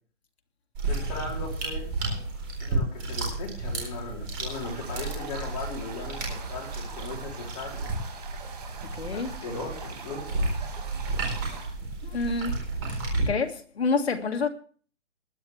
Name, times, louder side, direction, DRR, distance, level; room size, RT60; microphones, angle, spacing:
sound 1, 0.7-13.2, right 2 dB, 15° right, 4.2 m, -32 dB
voice 1, 0.9-1.9 2.6-7.9 9.1-10.5, left 3 dB, 15° left, 3.7 m, -38 dB
sound 2, 4.5-11.7, right 5 dB, 35° right, 5.3 m, -43 dB
voice 2, 9.0-9.3 12.0-12.6 12.8-13.0 13.3-14.5, left 4 dB, 60° left, 2.1 m, -28 dB
20.0 x 11.0 x 3.4 m
hypercardioid pair, 175°, 36 cm